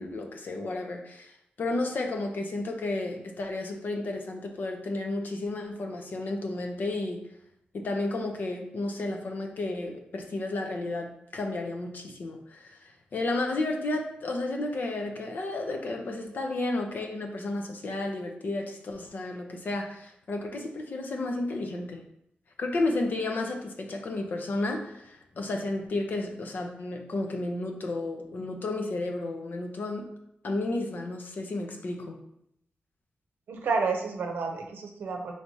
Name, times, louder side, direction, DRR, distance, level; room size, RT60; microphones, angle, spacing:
voice 1, 0.0-1.3 1.6-7.2 7.7-22.0 22.6-30.1 30.4-32.2, left 2 dB, 65° left, 3 dB, 0.6 m, -32 dB
voice 2, 33.5-35.3, right 4 dB, 90° right, 3 dB, 0.6 m, -30 dB
4.5 x 3.3 x 2.7 m, 0.77 s
cardioid pair, 80°, 3 cm